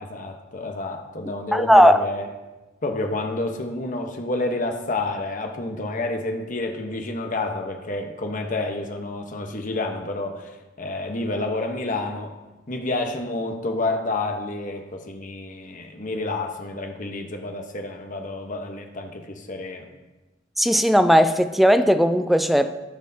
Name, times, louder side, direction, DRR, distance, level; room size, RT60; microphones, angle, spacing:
voice 1, 0.1-2.3 2.8-10.5 10.8-12.3 12.7-19.9, left 2 dB, 45° left, 3 dB, 1.0 m, -29 dB
voice 2, 1.5-2.0 20.6-22.7, equal, ahead, 10 dB, 0.3 m, -17 dB
15.5 x 6.3 x 2.8 m, 1.1 s
head